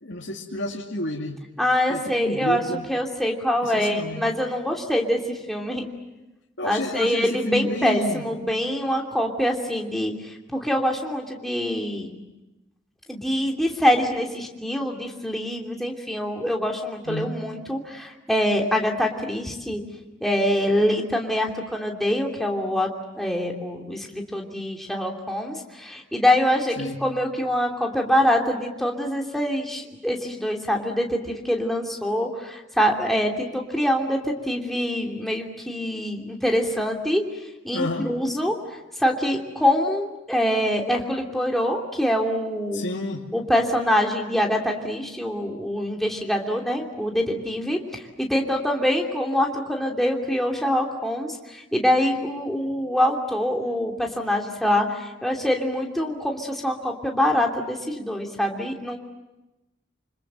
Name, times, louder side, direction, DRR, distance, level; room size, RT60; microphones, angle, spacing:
voice 1, 0.0-1.4 1.9-2.9 3.6-4.2 6.6-8.2 17.1-17.4 26.8-27.0 37.7-38.1 42.7-43.2, left 1 dB, 70° left, -2 dB, 2.5 m, -30 dB
voice 2, 1.6-2.6 2.9-5.9 6.6-10.1 10.5-12.2 13.1-19.8 20.2-22.9 23.1-37.2 37.6-38.5 39.0-42.8 43.3-59.0, equal, ahead, 0 dB, 3.0 m, -24 dB
27.5 x 26.5 x 7.6 m, 1.0 s
head